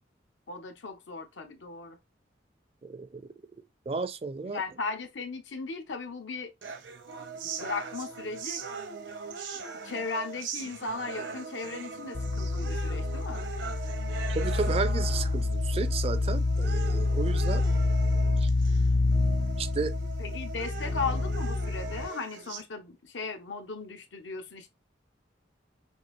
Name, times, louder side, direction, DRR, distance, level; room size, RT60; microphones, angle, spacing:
voice 1, 0.5-2.0 4.4-6.5 7.5-8.6 9.8-13.5 20.2-24.7, left 4 dB, 85° left, 0.9 m, -37 dB
voice 2, 2.8-3.2 3.9-4.6 14.3-17.6 18.4-18.5 19.6-20.0, right 4 dB, 30° right, 0.4 m, -33 dB
sound 1, 6.6-22.6, right 5 dB, 80° right, 0.9 m, -40 dB
sound 2, 12.1-22.1, left 3 dB, 50° left, 0.4 m, -27 dB
6.1 x 2.7 x 3.0 m
head